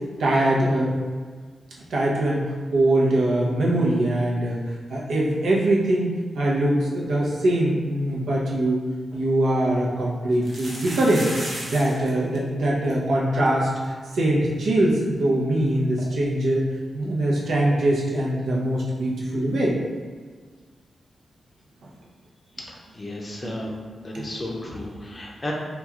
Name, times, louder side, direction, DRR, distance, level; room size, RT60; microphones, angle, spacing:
voice 1, 0.2-1.0 1.9-6.1 6.3-19.8 21.8-21.9 23.4-23.6 23.9-24.4 25.1-25.2, right 1 dB, 85° right, -4 dB, 0.7 m, -23 dB
sound 1, 9.1-9.2 10.3-12.1 12.4-12.5 12.6-12.9 13.5-13.6 13.8-13.9 16.0-16.1, right 1 dB, 40° right, 0.7 m, -34 dB
voice 2, 22.7-23.8 24.0-25.5, left 1 dB, 25° left, -2 dB, 0.5 m, -34 dB
3.0 x 2.3 x 3.5 m, 1.5 s
wide cardioid pair, 150°, 0 cm